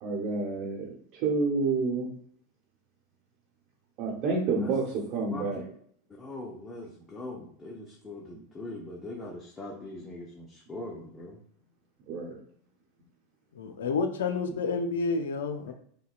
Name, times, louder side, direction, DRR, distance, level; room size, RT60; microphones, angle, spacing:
voice 1, 0.0-2.1 4.0-5.6 12.1-12.4, right 4 dB, 50° right, 1.0 m, -29 dB
voice 2, 5.3-5.6 6.2-11.4, left 2 dB, 20° left, 0.7 m, -41 dB
voice 3, 13.5-15.7, left 4 dB, 75° left, 0.4 m, -29 dB
5.4 x 2.1 x 2.4 m
hypercardioid pair, 95°, 0 cm